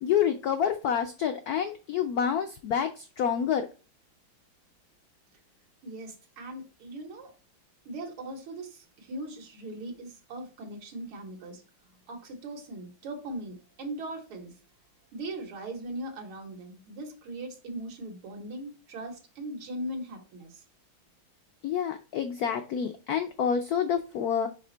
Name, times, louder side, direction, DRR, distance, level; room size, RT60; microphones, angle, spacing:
voice 1, 0.0-3.6 21.6-24.5, left 8 dB, 85° left, 7 dB, 0.8 m, -28 dB
voice 2, 5.8-7.3 7.9-11.6 12.1-14.6 15.1-20.6, right 1 dB, 85° right, 2 dB, 2.1 m, -39 dB
5.3 x 5.0 x 3.9 m, 0.34 s
omnidirectional pair, 2.3 m